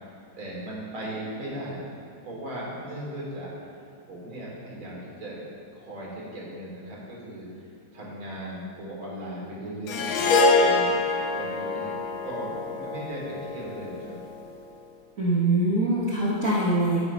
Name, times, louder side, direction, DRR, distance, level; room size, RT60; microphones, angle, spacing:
voice 1, 0.4-1.9 2.2-3.5 4.0-5.4 5.8-7.7 7.9-10.3 10.5-11.0 11.3-11.9 12.2-14.1, right 1 dB, 85° right, -6 dB, 4.3 m, -37 dB
Harp, 9.9-14.3, left 3 dB, 75° left, 1.8 m, -25 dB
voice 2, 15.2-17.0, right 2 dB, 45° right, -6 dB, 1.8 m, -23 dB
13.0 x 8.8 x 5.6 m, 2.7 s
omnidirectional pair, 2.2 m